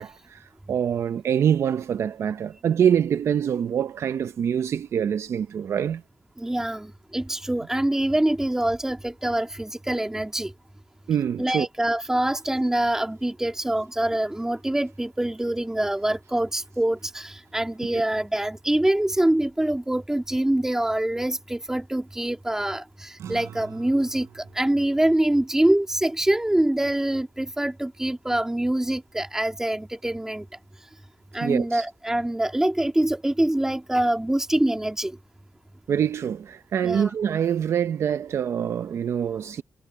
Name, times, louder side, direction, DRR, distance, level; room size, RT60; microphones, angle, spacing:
voice 1, 0.0-6.0 11.1-11.7 17.9-18.0 31.4-31.8 35.9-39.6, right 8 dB, 75° right, 0.7 m, -25 dB
voice 2, 6.4-10.5 11.4-30.5 31.3-35.2 36.8-37.1, right 1 dB, 10° right, 2.2 m, -25 dB
sound 1, 23.2-27.8, right 9 dB, 90° right, 4.3 m, -47 dB
cardioid pair, 85°, 5 cm